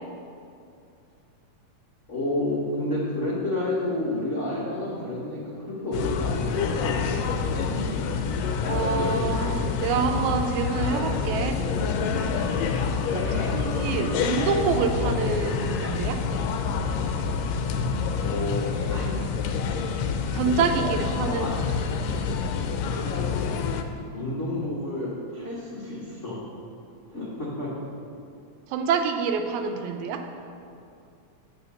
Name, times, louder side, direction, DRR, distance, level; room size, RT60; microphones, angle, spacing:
voice 1, 2.1-7.0 13.0-13.5 18.2-19.3 20.8-21.5 22.8-23.3 24.1-26.4 27.1-27.7, left 1 dB, 55° left, -7 dB, 0.8 m, -30 dB
sound 1, 5.9-23.8, left 5 dB, 80° left, 1.6 m, -27 dB
voice 2, 8.6-11.6 13.2-13.3 13.5-16.2 20.3-21.6 28.7-30.2, right 6 dB, 85° right, 6 dB, 2.0 m, -26 dB
8.7 x 4.4 x 6.8 m, 2.5 s
omnidirectional pair, 3.3 m